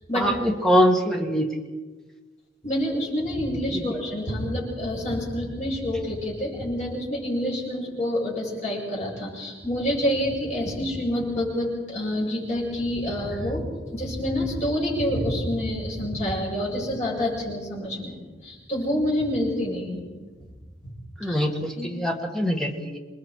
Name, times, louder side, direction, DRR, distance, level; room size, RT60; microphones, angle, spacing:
voice 1, 0.1-1.5 3.7-3.9 21.2-23.0, equal, 5° left, 1 dB, 2.0 m, -23 dB
voice 2, 2.6-13.6 13.9-18.2 18.4-20.0 21.3-21.4 21.8-21.9, equal, 40° left, -3 dB, 7.7 m, -27 dB
27.5 x 20.5 x 4.8 m, 1.4 s
head